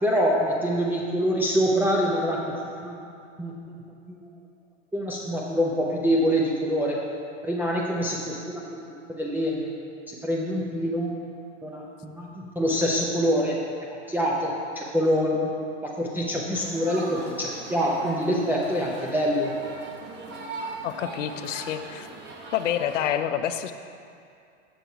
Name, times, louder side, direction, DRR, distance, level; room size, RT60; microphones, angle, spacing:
voice 1, 0.0-3.0 3.4-3.8 4.1-4.3 4.9-7.0 7.4-8.8 9.1-9.7 10.1-11.1 11.6-13.6 13.8-15.5 15.8-19.5, equal, 5° right, -6 dB, 0.6 m, -25 dB
sound 1, 16.5-23.1, right 3 dB, 30° right, 1.0 m, -40 dB
voice 2, 20.8-22.1 22.5-23.7, left 10 dB, 80° left, 10 dB, 0.6 m, -28 dB
7.0 x 6.1 x 4.5 m, 2.4 s
hypercardioid pair, 110°, 37 cm